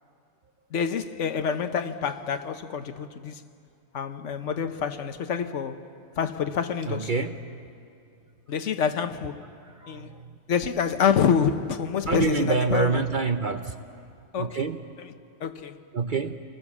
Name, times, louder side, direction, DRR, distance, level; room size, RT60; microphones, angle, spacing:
voice 1, 0.7-3.4 3.9-5.8 6.2-7.3 8.5-9.4 9.9-10.1 10.5-13.0 14.3-14.7 15.0-15.1 15.4-15.8, left 7 dB, 70° left, 1.3 m, -27 dB
voice 2, 6.9-7.4 9.8-10.3 12.1-13.8 14.4-14.8 15.9-16.4, right 4 dB, 45° right, 0.8 m, -26 dB
28.0 x 20.5 x 7.3 m
omnidirectional pair, 1.3 m